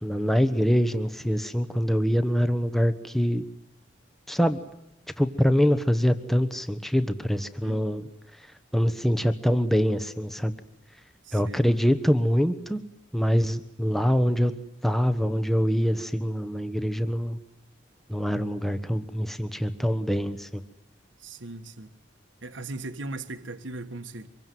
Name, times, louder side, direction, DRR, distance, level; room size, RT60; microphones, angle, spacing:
voice 1, 0.0-3.4 4.3-4.6 5.2-8.0 8.7-10.5 11.3-12.8 13.1-14.5 14.8-17.4 18.1-20.6, equal, ahead, 1.0 m, -24 dB
voice 2, 7.6-8.1 11.2-11.6 21.2-21.9 22.4-24.3, right 2 dB, 85° right, 1.5 m, -38 dB
25.5 x 22.5 x 9.3 m
head